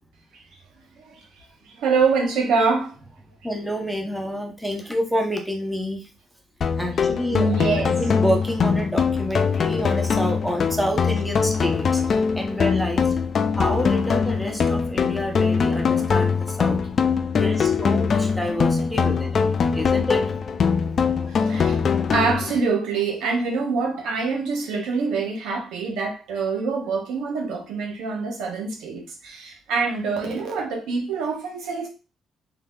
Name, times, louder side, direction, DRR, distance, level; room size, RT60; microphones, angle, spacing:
voice 1, 1.8-2.9 7.1-7.9 17.8-17.9 21.4-31.9, right 4 dB, 90° right, 1.2 m, -25 dB
voice 2, 3.4-6.1 6.8-13.1 13.6-16.8 17.3-19.5 19.7-20.2, equal, ahead, 0.9 m, -28 dB
sound 1, 6.6-22.6, left 6 dB, 50° left, 0.5 m, -22 dB
3.4 x 2.8 x 3.7 m
cardioid pair, 90°, 0 cm